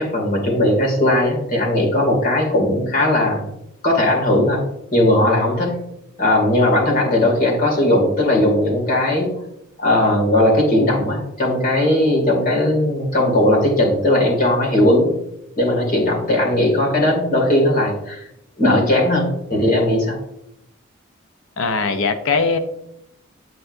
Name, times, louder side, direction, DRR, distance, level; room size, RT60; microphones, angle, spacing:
voice 1, 0.0-3.5 3.8-4.6 4.9-5.8 6.2-9.3 9.8-15.1 15.6-18.3 18.6-20.2, left 1 dB, 45° left, 0 dB, 2.4 m, -18 dB
voice 2, 21.6-22.6, left 4 dB, 65° left, 8 dB, 0.6 m, -20 dB
7.8 x 7.7 x 2.6 m, 0.80 s
head